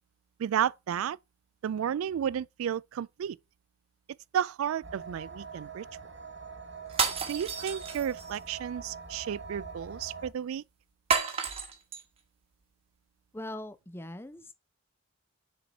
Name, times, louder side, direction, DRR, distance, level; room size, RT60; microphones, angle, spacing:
voice 1, 0.4-1.2 1.6-3.4 4.3-5.9 7.0-10.6, right 9 dB, 80° right, 0.3 m, -32 dB
sound 1, 4.8-10.3, right 5 dB, 55° right, 1.1 m, -44 dB
sound 2, 6.9-8.4 11.1-12.0, right 5 dB, 30° right, 1.2 m, -30 dB
voice 2, 13.3-14.5, left 1 dB, 10° left, 0.5 m, -41 dB
7.0 x 4.4 x 4.1 m
head